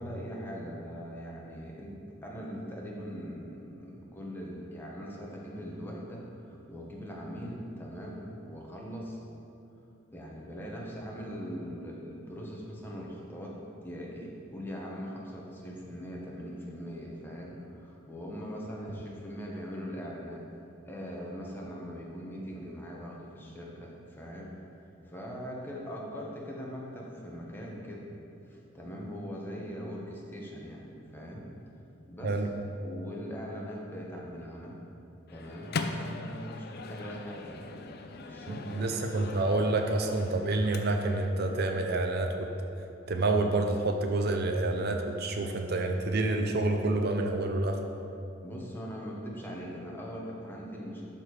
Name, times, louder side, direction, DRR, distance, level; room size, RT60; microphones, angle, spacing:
voice 1, 0.0-9.2 10.1-13.6 13.8-20.4 20.9-24.5 25.0-28.1 28.4-31.5 32.1-32.5 32.8-34.8 35.3-39.0 48.4-51.0, equal, 10° left, -3 dB, 1.2 m, -41 dB
Microwave oven, 35.3-41.3, left 3 dB, 55° left, 0.5 m, -40 dB
voice 2, 38.5-42.5 43.1-47.8, right 2 dB, 55° right, 4 dB, 0.6 m, -28 dB
11.5 x 4.3 x 4.8 m, 2.8 s
head